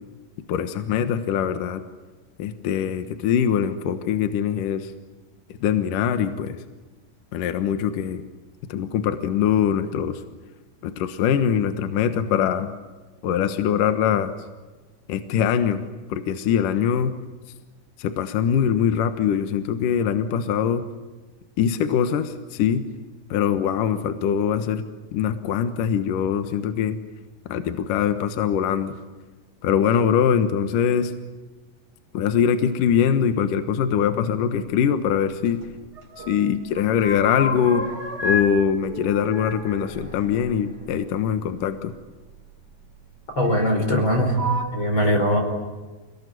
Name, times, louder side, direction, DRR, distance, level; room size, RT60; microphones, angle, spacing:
voice 1, 0.5-1.8 2.4-4.9 5.6-6.6 7.3-8.2 8.7-10.2 10.8-12.7 13.2-14.3 15.1-15.8 16.1-17.1 18.0-20.8 21.6-22.8 23.3-24.8 25.1-27.0 27.5-28.9 29.6-31.1 32.1-35.6 36.3-37.9 38.2-41.9, left 8 dB, 70° left, 9 dB, 2.8 m, -22 dB
sound 1, 35.5-36.4 36.6-38.5 38.8-41.3 42.3-42.4 43.4-44.0 44.3-44.6, left 1 dB, 25° right, 5.3 m, -31 dB
voice 2, 43.3-44.4 44.7-45.4, equal, 35° left, 4 dB, 5.4 m, -21 dB
29.0 x 19.5 x 9.6 m, 1.3 s
omnidirectional pair, 4.1 m